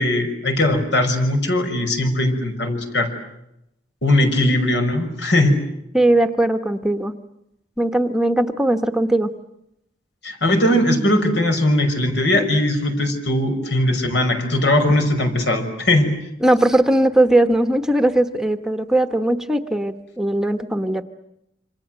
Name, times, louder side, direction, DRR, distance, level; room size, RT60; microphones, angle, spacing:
voice 1, 0.0-3.1 4.0-5.6 10.2-16.1, left 1 dB, 75° left, 6 dB, 5.7 m, -19 dB
voice 2, 5.9-7.1 7.8-9.3 16.4-21.0, right 1 dB, 5° right, 8 dB, 1.1 m, -19 dB
28.0 x 26.0 x 7.8 m, 0.82 s
head